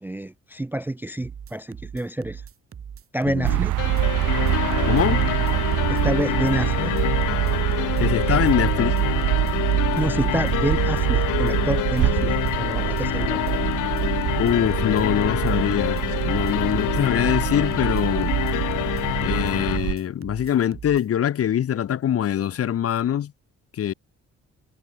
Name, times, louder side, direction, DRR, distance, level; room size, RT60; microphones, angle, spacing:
voice 1, 0.0-2.4 3.1-3.7 5.9-6.9 9.9-13.6, right 1 dB, 5° right, 0.4 m, -28 dB
sound 1, 1.2-21.0, right 7 dB, 45° right, 3.5 m, -40 dB
voice 2, 3.2-3.6 4.8-5.2 8.0-9.0 14.4-18.4 19.2-23.3 23.7-23.9, left 10 dB, 50° left, 0.9 m, -23 dB
sound 2, 3.4-19.9, right 15 dB, 80° right, 1.1 m, -25 dB
sound 3, 3.8-19.8, left 16 dB, 85° left, 1.5 m, -27 dB
cardioid pair, 90°, 30 cm